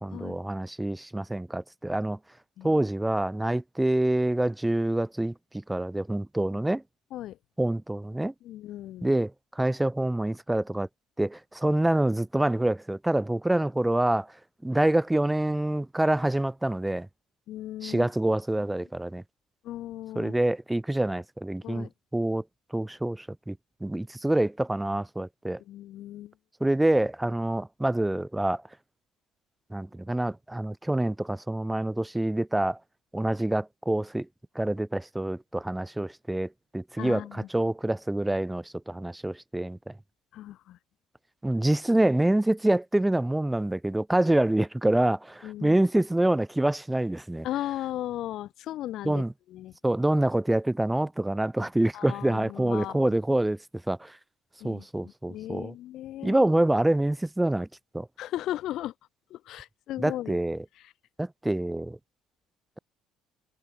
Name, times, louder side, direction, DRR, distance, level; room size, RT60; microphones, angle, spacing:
voice 1, 0.0-2.2 2.6-5.3 5.7-6.8 7.6-8.3 9.0-10.9 11.2-14.3 14.6-17.1 17.8-19.2 20.1-22.4 22.7-25.6 26.6-28.6 29.7-32.8 33.1-34.2 34.5-36.5 36.7-39.9 41.4-47.5 49.0-49.3 49.8-53.6 53.9-54.1 54.6-55.7 56.2-57.7 57.9-58.1 60.0-60.6 61.2-62.0, right 1 dB, 10° right, 1.7 m, -26 dB
voice 2, 8.4-9.1 17.5-18.1 19.6-20.3 21.6-21.9 25.6-26.3 37.0-37.5 40.3-40.8 45.4-45.8 47.4-49.7 51.9-53.1 54.6-56.4 58.2-58.9 59.3-60.4 60.8-60.9, left 13 dB, 60° left, 2.2 m, -37 dB
hypercardioid pair, 60°, 0 cm